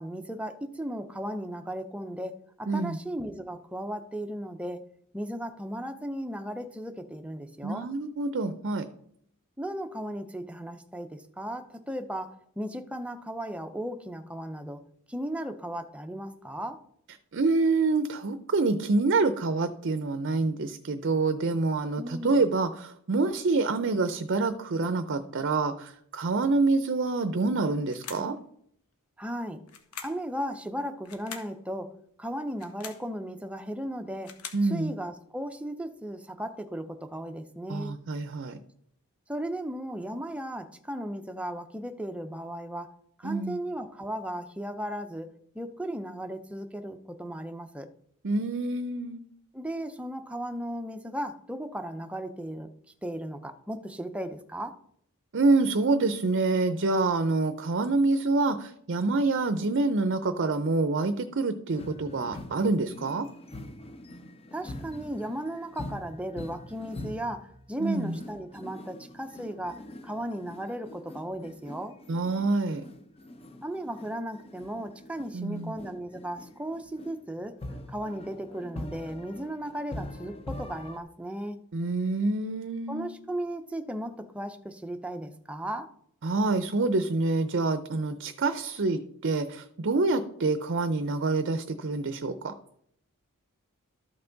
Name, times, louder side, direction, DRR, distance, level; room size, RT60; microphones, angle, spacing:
voice 1, 0.0-4.8 5.1-7.9 9.6-14.8 15.1-16.8 22.0-22.4 29.2-29.6 30.0-31.9 32.2-34.3 34.6-37.9 39.3-42.9 43.2-45.3 45.5-47.9 49.5-52.7 53.0-54.8 64.5-72.0 73.6-77.6 77.9-81.6 82.9-85.9, right 1 dB, 5° right, 6 dB, 0.6 m, -36 dB
voice 2, 2.7-3.0 7.6-8.8 17.3-28.4 34.5-34.9 37.7-38.6 43.2-43.6 48.2-49.2 55.3-63.3 67.8-68.2 72.1-72.8 75.3-75.7 81.7-83.1 86.2-92.5, right 3 dB, 55° right, 9 dB, 0.6 m, -27 dB
sound 1, 27.9-28.4 29.7-30.3 31.0-31.6 32.5-33.1 34.0-34.7, left 7 dB, 80° left, 1.2 m, -43 dB
sound 2, 61.8-81.0, left 1 dB, 25° left, 0.7 m, -44 dB
13.0 x 5.7 x 3.9 m, 0.68 s
head